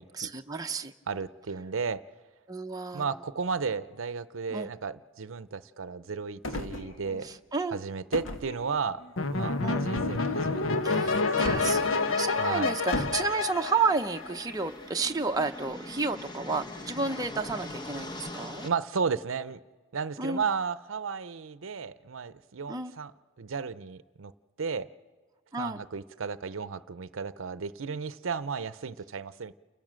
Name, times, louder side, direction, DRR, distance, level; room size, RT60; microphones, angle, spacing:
voice 1, 0.1-0.9 2.5-3.0 4.5-4.7 7.2-7.8 9.6-9.9 10.8-18.7 20.2-20.4 22.7-22.9 25.5-25.8, right 4 dB, 20° right, 4 dB, 0.7 m, -31 dB
voice 2, 1.1-2.0 2.9-7.3 7.7-9.0 9.3-11.6 12.4-12.7 18.6-19.6 19.9-23.1 23.4-24.3 24.6-24.9 25.6-29.5, right 5 dB, 75° right, 15 dB, 0.6 m, -34 dB
sound 1, 6.4-7.4 8.1-9.1 9.9-10.4 11.4-11.8 12.9-13.3, left 1 dB, 70° left, 1.6 m, -36 dB
sound 2, 9.2-14.6, left 3 dB, 90° left, 1.0 m, -28 dB
sound 3, 11.5-18.7, left 1 dB, 20° left, 1.0 m, -43 dB
29.0 x 16.0 x 7.6 m, 1.4 s
head